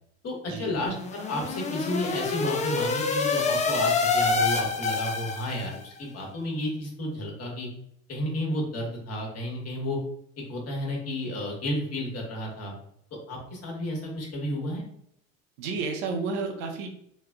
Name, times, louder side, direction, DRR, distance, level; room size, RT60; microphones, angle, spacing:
voice 1, 0.2-7.7 8.1-10.0 10.5-12.7 13.3-14.8, left 1 dB, 40° left, 0 dB, 1.4 m, -32 dB
sound 1, 0.8-5.8, left 4 dB, 20° left, 0.5 m, -27 dB
voice 2, 15.6-16.9, right 4 dB, 65° right, 3 dB, 0.8 m, -31 dB
3.4 x 3.2 x 2.2 m, 0.70 s
hypercardioid pair, 70°, 39 cm